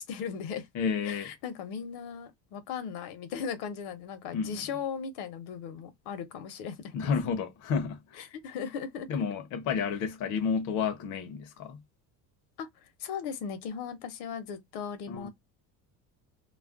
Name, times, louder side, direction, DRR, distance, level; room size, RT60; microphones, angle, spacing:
voice 1, 0.0-0.7 1.0-6.9 8.2-9.1 12.6-15.3, left 7 dB, 80° left, 0.8 m, -37 dB
voice 2, 0.7-1.3 4.3-4.6 6.9-8.3 9.1-11.8 15.1-15.3, left 6 dB, 50° left, 0.6 m, -31 dB
2.4 x 2.0 x 3.5 m
cardioid pair, 155°, 39 cm